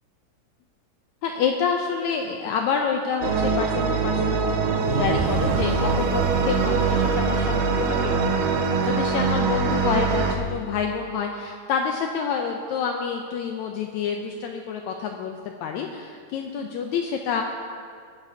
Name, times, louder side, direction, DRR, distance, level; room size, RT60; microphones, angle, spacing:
voice 1, 1.2-4.4 4.8-8.3 8.8-17.4, left 6 dB, 80° left, 3 dB, 1.8 m, -28 dB
sound 1, 3.2-10.3, right 5 dB, 90° right, 2.3 m, -23 dB
18.5 x 9.1 x 2.7 m, 2.1 s
omnidirectional pair, 3.6 m